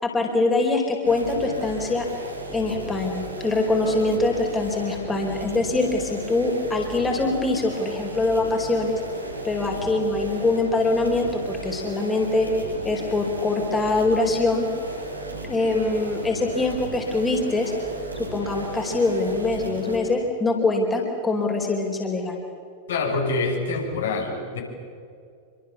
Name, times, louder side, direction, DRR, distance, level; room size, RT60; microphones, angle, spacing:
voice 1, 0.0-2.1 2.5-9.0 9.4-12.5 12.8-14.7 15.4-17.7 18.1-22.4, left 3 dB, 15° left, 2 dB, 4.7 m, -23 dB
sound 1, 1.0-20.0, right 2 dB, 85° right, 6.0 m, -35 dB
voice 2, 22.9-24.6, left 3 dB, 65° left, 1 dB, 6.7 m, -25 dB
27.5 x 25.5 x 7.2 m, 2.3 s
figure-of-eight pair, 90°, 0 cm